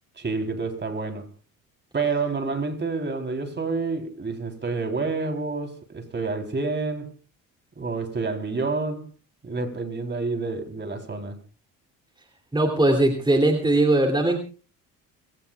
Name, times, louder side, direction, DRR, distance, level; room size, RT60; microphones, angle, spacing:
voice 1, 0.2-1.2 1.9-7.1 7.8-9.0 9.4-11.4, right 4 dB, 30° right, 3.6 m, -28 dB
voice 2, 12.5-14.4, right 2 dB, 10° right, 2.9 m, -20 dB
29.5 x 17.5 x 2.4 m
supercardioid pair, 80°, 36 cm